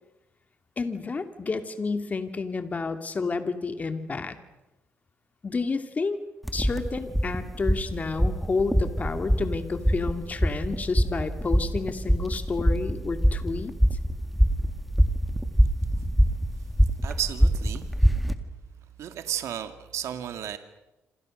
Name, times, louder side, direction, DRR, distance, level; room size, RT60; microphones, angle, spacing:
voice 1, 0.8-4.4 5.4-6.2 6.5-13.7, left 4 dB, 30° left, 8 dB, 2.6 m, -30 dB
sound 1, 6.4-18.4, equal, ahead, 1.9 m, -24 dB
voice 2, 17.0-18.0 19.0-20.6, right 10 dB, 80° right, 9 dB, 2.1 m, -33 dB
27.5 x 27.0 x 6.5 m, 0.96 s
cardioid pair, 110°, 5 cm